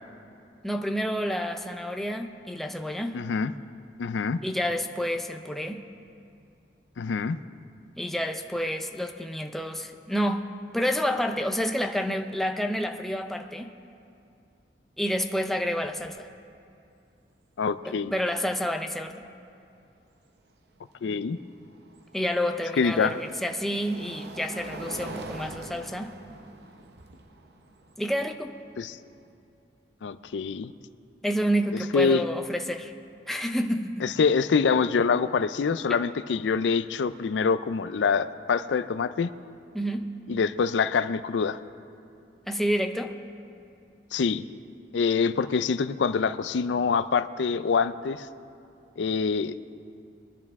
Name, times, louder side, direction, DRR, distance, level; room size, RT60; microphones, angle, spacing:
voice 1, 0.6-3.2 4.4-5.8 8.0-13.7 15.0-16.3 17.8-19.3 22.1-26.2 28.0-28.6 31.2-32.9 33.3-34.1 39.7-40.2 42.5-43.1, equal, ahead, 5 dB, 0.5 m, -29 dB
voice 2, 3.1-3.5 4.0-4.4 7.0-7.4 17.6-18.1 21.0-21.4 22.8-23.2 28.8-29.0 30.0-30.7 31.9-32.2 34.0-39.3 40.3-41.6 44.1-44.4 44.9-48.3 49.0-49.5, left 5 dB, 85° left, 13 dB, 0.4 m, -25 dB
sound 1, 15.5-15.6 15.8-16.3 18.1-18.2 21.2-29.3, right 2 dB, 60° right, 0.8 m, -44 dB
22.5 x 10.5 x 3.6 m, 2.5 s
head